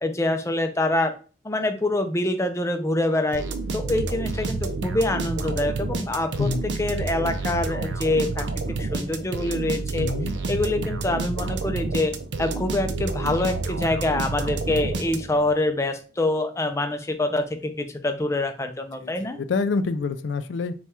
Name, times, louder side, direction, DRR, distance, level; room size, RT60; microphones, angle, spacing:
voice 1, 0.0-1.1 1.4-6.5 6.8-8.5 8.8-10.1 10.5-12.1 12.4-19.4, left 2 dB, 15° left, 7 dB, 0.4 m, -25 dB
sound 1, 3.3-15.5, right 3 dB, 80° right, 0.5 m, -29 dB
voice 2, 10.0-10.3 19.0-20.7, left 4 dB, 85° left, 10 dB, 0.4 m, -27 dB
3.4 x 2.3 x 4.2 m, 0.37 s
head